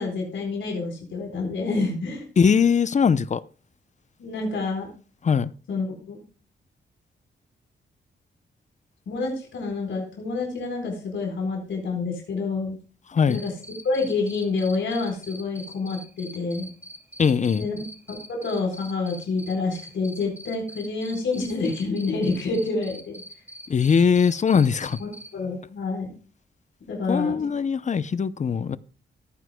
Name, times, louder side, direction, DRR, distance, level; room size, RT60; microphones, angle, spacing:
voice 1, 0.0-2.2 4.2-4.9 5.7-6.2 9.1-12.8 13.3-13.5 13.8-16.7 17.6-17.8 18.1-23.2 25.0-26.1 26.9-27.5, left 3 dB, 90° left, 4.2 m, -28 dB
voice 2, 2.4-3.4 5.2-5.5 13.1-13.4 17.2-17.7 23.7-25.0 27.1-28.8, left 6 dB, 40° left, 0.6 m, -21 dB
Cricket, 13.3-25.3, equal, 10° right, 2.4 m, -42 dB
17.5 x 9.4 x 2.2 m
wide cardioid pair, 110°, 19 cm